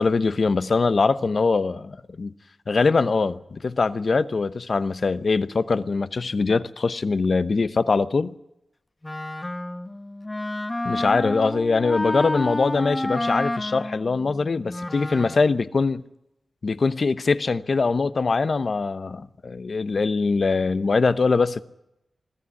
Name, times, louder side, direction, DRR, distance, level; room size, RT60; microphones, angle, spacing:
voice 1, 0.0-2.3 2.7-8.3 10.8-16.0 16.6-21.6, left 4 dB, 55° left, 0.9 m, -22 dB
Wind instrument woodwind instrument, 9.0-15.6, left 1 dB, 25° left, 1.0 m, -30 dB
21.0 x 14.5 x 9.6 m
wide cardioid pair, 75°, 0 cm